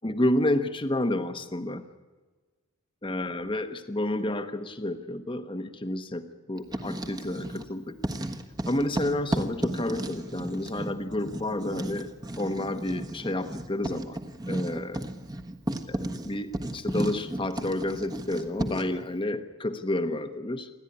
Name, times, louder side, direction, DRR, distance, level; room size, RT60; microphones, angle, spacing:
voice 1, 0.0-1.8 3.0-8.0 8.7-12.1 12.4-14.2 14.5-15.0 15.9-20.7, left 1 dB, 20° left, 9 dB, 1.1 m, -30 dB
Writing, 6.6-7.7 8.0-19.0, right 1 dB, 20° right, 1.4 m, -34 dB
28.5 x 12.5 x 9.8 m, 1.3 s
head